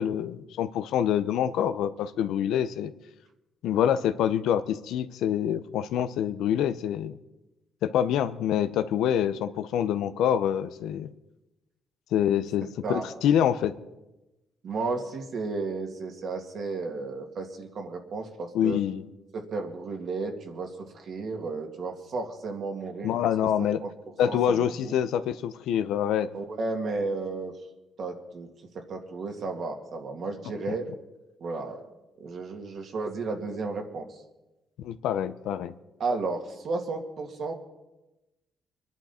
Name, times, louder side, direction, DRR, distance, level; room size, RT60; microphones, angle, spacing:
voice 1, 0.0-2.9 3.6-7.2 7.8-11.1 12.1-13.7 18.5-19.1 23.0-23.8 24.2-26.3 34.8-35.8, left 9 dB, 85° left, 12 dB, 0.7 m, -26 dB
voice 2, 14.6-18.8 19.3-23.1 23.6-23.9 24.3-24.9 26.3-27.5 28.0-28.5 28.7-30.9 31.4-31.8 32.2-34.2 36.0-37.5, right 3 dB, 60° right, 3 dB, 2.3 m, -33 dB
24.0 x 11.0 x 4.3 m, 1.0 s
cardioid pair, 90°, 0 cm